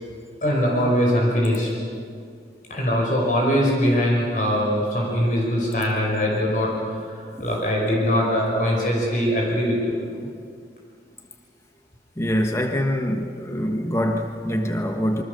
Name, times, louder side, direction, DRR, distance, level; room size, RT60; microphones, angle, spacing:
voice 1, 0.4-1.7 2.7-6.7 7.1-10.0, equal, 45° left, -2 dB, 5.5 m, -22 dB
voice 2, 12.2-15.2, equal, 15° left, 3 dB, 1.3 m, -24 dB
27.0 x 24.5 x 6.8 m, 2.3 s
head